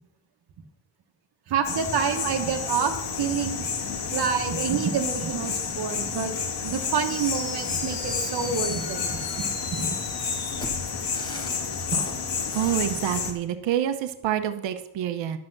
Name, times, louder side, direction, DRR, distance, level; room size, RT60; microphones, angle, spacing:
voice 1, 1.5-3.7 4.1-6.3 6.6-9.2 9.7-10.0 11.9-12.0, right 6 dB, 60° right, 4 dB, 1.2 m, -28 dB
sound 1, 1.6-13.3, left 5 dB, 65° left, 1.9 m, -30 dB
Fireworks, 6.9-12.9, left 1 dB, 10° left, 1.3 m, -39 dB
voice 2, 12.5-15.4, right 10 dB, 80° right, 9 dB, 0.9 m, -27 dB
11.5 x 7.7 x 6.0 m, 0.85 s
cardioid pair, 180°, 44 cm